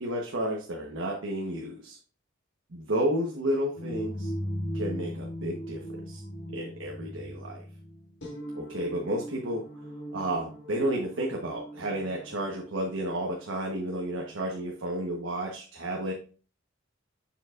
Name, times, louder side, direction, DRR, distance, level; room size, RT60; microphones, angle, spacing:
voice 1, 0.0-2.0 2.7-4.3 4.7-6.2 6.5-7.6 8.5-9.6 10.1-16.1, right 1 dB, 80° right, 0 dB, 1.2 m, -31 dB
sound 1, 3.7-13.7, equal, 60° left, 1.8 m, -39 dB
7.2 x 7.0 x 2.5 m, 0.38 s
head